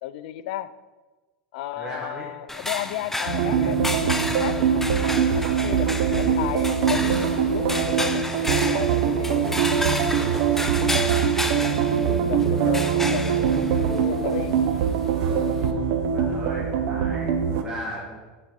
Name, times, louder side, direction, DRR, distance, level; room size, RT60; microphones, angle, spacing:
voice 1, 0.0-0.7 1.5-4.9 5.3-9.5 9.8-10.3 10.8-13.6 14.0-14.6, left 13 dB, 70° left, 15 dB, 0.4 m, -34 dB
voice 2, 1.8-2.3 16.1-18.2, right 1 dB, 10° right, -5 dB, 1.4 m, -36 dB
sound 1, 2.5-15.7, left 1 dB, 5° left, 0.5 m, -32 dB
sound 2, 3.3-17.6, right 7 dB, 65° right, 0.7 m, -23 dB
sound 3, 5.3-15.7, equal, 40° right, 2.1 m, -42 dB
8.1 x 3.8 x 4.6 m, 1.2 s
hypercardioid pair, 105°, 5 cm